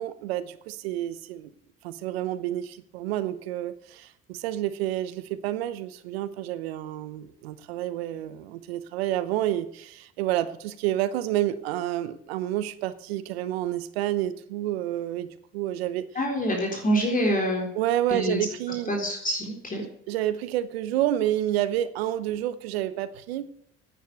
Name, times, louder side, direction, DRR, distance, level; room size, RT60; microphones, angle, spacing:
voice 1, 0.0-1.5 1.8-16.0 17.7-18.9 19.8-23.6, right 13 dB, 90° right, 14 dB, 0.9 m, -29 dB
voice 2, 16.2-17.7 18.1-18.4 18.9-19.8, equal, 30° left, 1 dB, 4.0 m, -26 dB
9.9 x 9.2 x 8.3 m, 0.68 s
supercardioid pair, 75°, 30 cm